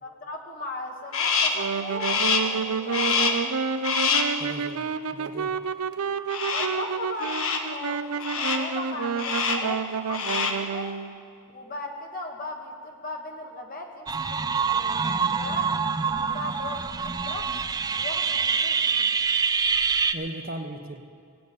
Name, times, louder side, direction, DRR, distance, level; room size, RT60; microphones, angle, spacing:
voice 1, 0.0-3.4 6.5-11.0 11.5-17.5 17.9-19.1, left 2 dB, 40° left, 1 dB, 1.3 m, -38 dB
Crow, 1.1-1.7 2.0-2.6 2.9-3.5 3.8-4.4 6.3-6.8 7.2-7.7 8.2-8.7 9.2-9.7 10.0-10.7, left 5 dB, 70° left, 1.2 m, -26 dB
Wind instrument woodwind instrument, 1.4-11.1, right 6 dB, 85° right, 0.5 m, -30 dB
voice 2, 4.4-4.9 5.1-5.6 20.1-21.0, right 1 dB, 40° right, 6 dB, 1.0 m, -37 dB
sound 1, 14.1-20.1, right 5 dB, 15° right, 0.4 m, -25 dB
17.5 x 8.2 x 8.4 m, 2.2 s
head